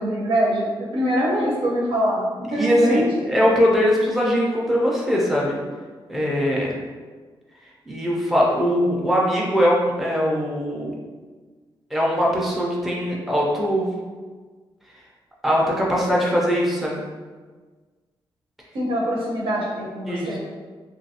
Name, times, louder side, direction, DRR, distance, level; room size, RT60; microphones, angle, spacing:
voice 1, 0.0-3.1 18.7-20.4, equal, 80° right, -4 dB, 0.8 m, -23 dB
voice 2, 2.5-3.0 3.3-5.6 6.1-6.7 7.9-10.9 11.9-13.9 15.4-17.0 20.1-20.4, equal, ahead, -4 dB, 0.5 m, -21 dB
3.1 x 2.6 x 2.8 m, 1.4 s
wide cardioid pair, 150°, 9 cm